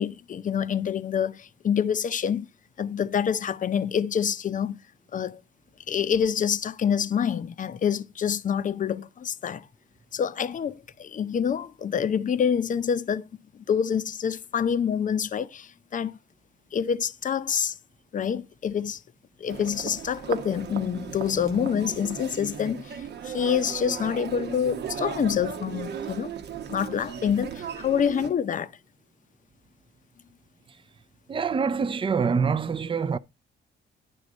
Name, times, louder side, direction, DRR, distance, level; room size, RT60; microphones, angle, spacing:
voice 1, 0.0-2.5 2.8-4.8 5.1-5.4 5.9-9.7 10.1-13.3 13.7-16.1 16.7-17.7 18.1-19.0 19.4-26.3 26.7-28.7, left 8 dB, 40° left, 0.7 m, -27 dB
Human voice, 19.5-28.3, right 8 dB, 60° right, 1.0 m, -36 dB
voice 2, 31.3-33.2, right 5 dB, 25° right, 0.5 m, -25 dB
11.0 x 3.9 x 6.2 m
cardioid pair, 90°, 20 cm